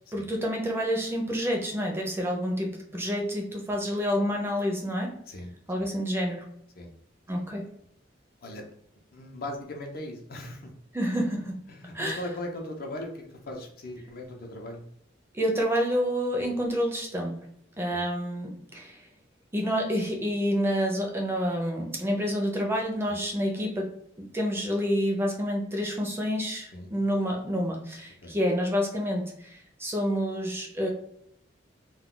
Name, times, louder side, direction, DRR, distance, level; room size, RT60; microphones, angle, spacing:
voice 1, 0.1-5.1 5.7-6.4 7.3-7.7 10.9-11.6 11.9-12.2 15.3-17.4 17.8-19.0 19.5-30.9, equal, 15° right, 1 dB, 0.5 m, -28 dB
voice 2, 9.1-10.7 11.7-14.8 17.9-18.0 23.1-23.2 26.7-26.9 28.2-28.3, left 1 dB, 50° left, 2 dB, 0.5 m, -38 dB
2.3 x 2.2 x 3.7 m, 0.70 s
head